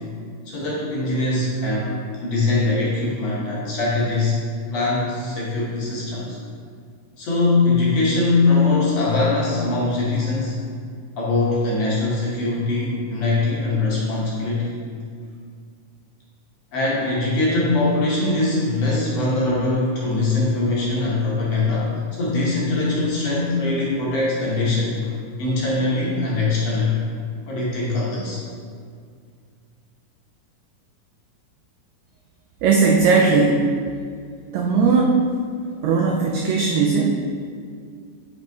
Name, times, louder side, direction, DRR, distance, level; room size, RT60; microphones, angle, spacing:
voice 1, 0.5-4.4 4.7-6.4 7.2-10.5 11.2-14.7 16.7-25.1 25.4-27.0 27.5-28.4, left 3 dB, 65° left, -5 dB, 1.9 m, -22 dB
voice 2, 32.6-33.7 34.5-35.2 35.8-37.2, right 4 dB, 85° right, 0 dB, 1.5 m, -18 dB
5.4 x 5.1 x 4.5 m, 2.1 s
omnidirectional pair, 3.7 m